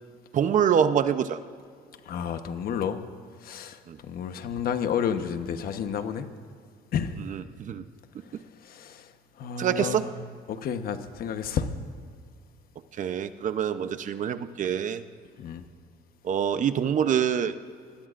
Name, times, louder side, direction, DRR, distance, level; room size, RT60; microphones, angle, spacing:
voice 1, 0.3-1.4 3.9-4.0 7.2-7.8 9.6-10.1 13.0-15.0 16.2-17.5, right 8 dB, 50° right, 10 dB, 0.8 m, -25 dB
voice 2, 2.0-3.0 3.4-6.3 6.9-7.2 8.3-9.1 9.4-10.2 10.5-11.7 15.4-15.6, left 8 dB, 60° left, 8 dB, 1.2 m, -31 dB
26.0 x 20.0 x 2.6 m, 2.1 s
cardioid pair, 110°, 17 cm